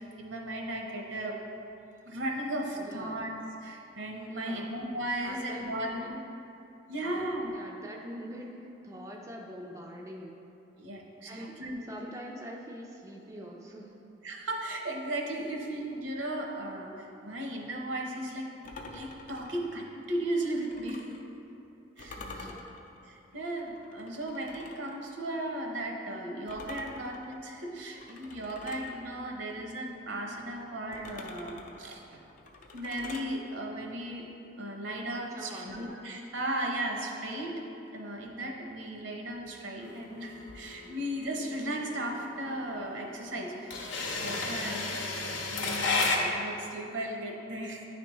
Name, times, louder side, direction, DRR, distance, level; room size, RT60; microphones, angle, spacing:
voice 1, 0.0-1.4 2.0-3.3 3.6-6.1 6.9-7.5 10.8-11.8 14.2-18.5 18.9-21.1 22.0-22.5 23.0-32.2 32.7-34.3 34.6-37.6 37.9-43.8 44.1-45.0 45.5-47.8, right 1 dB, 70° right, 0 dB, 0.8 m, -36 dB
voice 2, 2.8-3.2 4.3-4.7 5.2-6.3 7.0-10.4 11.3-11.6 11.9-14.0 22.2-22.7 35.3-35.9 44.5-44.9, equal, 15° right, -1 dB, 0.4 m, -44 dB
sound 1, 18.6-21.2 22.0-25.0 26.5-28.9 30.9-33.3, left 3 dB, 45° left, 0.4 m, -47 dB
sound 2, 39.9-46.2, left 3 dB, 80° left, 0.7 m, -32 dB
9.5 x 3.4 x 3.0 m, 3.0 s
head